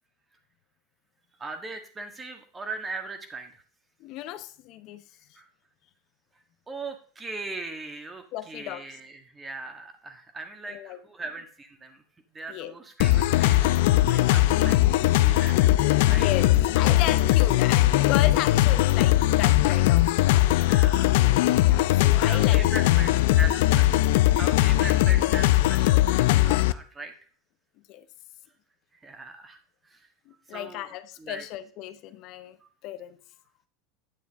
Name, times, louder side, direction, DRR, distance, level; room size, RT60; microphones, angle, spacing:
voice 1, 1.4-3.6 5.3-5.5 6.7-12.0 12.3-16.3 20.5-21.4 21.9-23.9 24.4-27.1 28.9-30.1 30.5-31.4 32.6-32.7, right 3 dB, 20° right, 6 dB, 1.6 m, -40 dB
voice 2, 4.0-5.0 8.3-8.8 10.7-11.0 12.5-12.7 16.1-20.4 21.6-22.6 27.9-28.0 30.3-32.6 32.8-33.2, left 13 dB, 55° left, 12 dB, 0.8 m, -34 dB
sound 1, 13.0-26.7, left 15 dB, 75° left, 0.4 m, -20 dB
9.1 x 7.2 x 3.6 m, 0.43 s
supercardioid pair, 115°, 0 cm